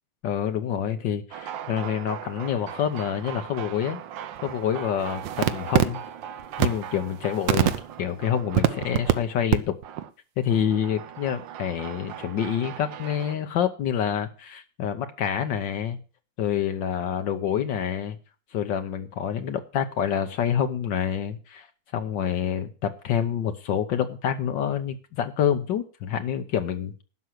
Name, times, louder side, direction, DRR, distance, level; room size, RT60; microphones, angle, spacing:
voice 1, 0.2-4.0 4.4-6.0 6.6-7.7 8.0-9.7 10.4-16.0 16.4-18.2 18.5-21.7 21.9-27.0, left 9 dB, 75° left, 7 dB, 1.6 m, -27 dB
sound 1, 1.3-9.1 9.5-9.6 9.8-10.1 10.5-13.4, right 10 dB, 75° right, 1.5 m, -30 dB
11.5 x 6.2 x 7.8 m, 0.36 s
omnidirectional pair, 2.1 m